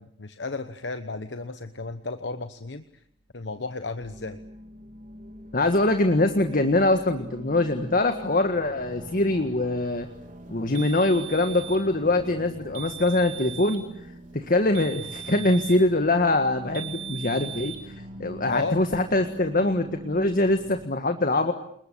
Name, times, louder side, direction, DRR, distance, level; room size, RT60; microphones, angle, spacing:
voice 1, 0.0-3.0 3.3-4.4 18.5-18.8, left 3 dB, 70° left, 10 dB, 1.1 m, -33 dB
sound 1, 4.0-20.9, equal, 45° right, 3.0 m, -44 dB
voice 2, 5.5-10.1 10.5-13.8 14.3-17.9 18.2-21.5, left 2 dB, 50° left, 7 dB, 1.7 m, -23 dB
sound 2, 10.7-11.9 12.7-13.9 14.7-15.9 16.7-17.9, right 11 dB, 80° right, 3.6 m, -39 dB
29.0 x 21.0 x 8.5 m, 0.69 s
head